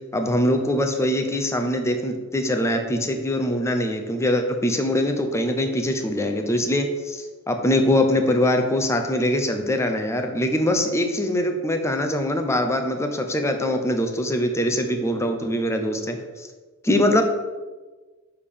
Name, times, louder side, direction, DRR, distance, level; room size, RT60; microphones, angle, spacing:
voice 1, 0.1-16.5 16.8-17.2, left 1 dB, 15° left, 5 dB, 0.6 m, -23 dB
6.6 x 3.5 x 5.2 m, 1.3 s
head